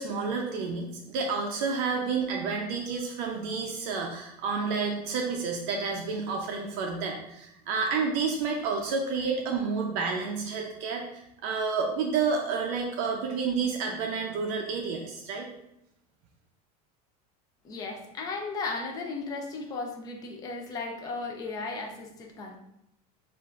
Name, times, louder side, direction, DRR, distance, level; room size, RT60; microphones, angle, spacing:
voice 1, 0.0-15.5, right 5 dB, 45° right, 1 dB, 0.5 m, -30 dB
voice 2, 17.6-22.6, left 3 dB, 20° left, 2 dB, 0.4 m, -35 dB
7.3 x 2.5 x 2.4 m, 0.81 s
cardioid pair, 170°, 21 cm